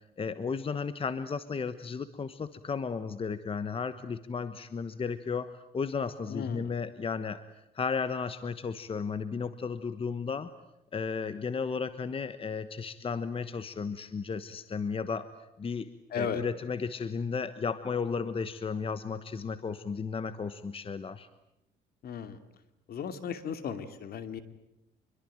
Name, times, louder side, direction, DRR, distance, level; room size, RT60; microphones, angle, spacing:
voice 1, 0.2-7.4 7.7-10.5 10.9-15.3 15.6-15.9 16.1-21.3, left 5 dB, 30° left, 13 dB, 1.2 m, -34 dB
voice 2, 6.3-6.7 16.1-16.4 22.0-22.4 22.9-24.4, left 7 dB, 60° left, 10 dB, 2.7 m, -35 dB
26.0 x 23.0 x 9.0 m, 0.85 s
cardioid pair, 110°, 18 cm